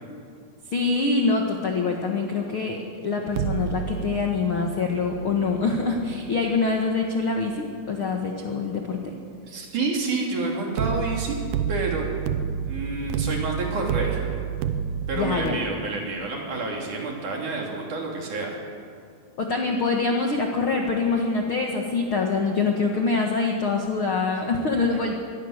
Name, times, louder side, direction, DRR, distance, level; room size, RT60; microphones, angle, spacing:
voice 1, 0.7-9.1 15.1-15.6 19.4-25.1, left 4 dB, 60° left, 1 dB, 1.3 m, -25 dB
sound 1, 3.3-8.4 10.8-15.5, right 9 dB, 75° right, 2.0 m, -31 dB
voice 2, 9.5-11.4 11.7-12.1 12.6-14.3 15.1-18.6, right 3 dB, 50° right, 0 dB, 4.2 m, -29 dB
25.0 x 18.5 x 6.6 m, 2.3 s
omnidirectional pair, 4.9 m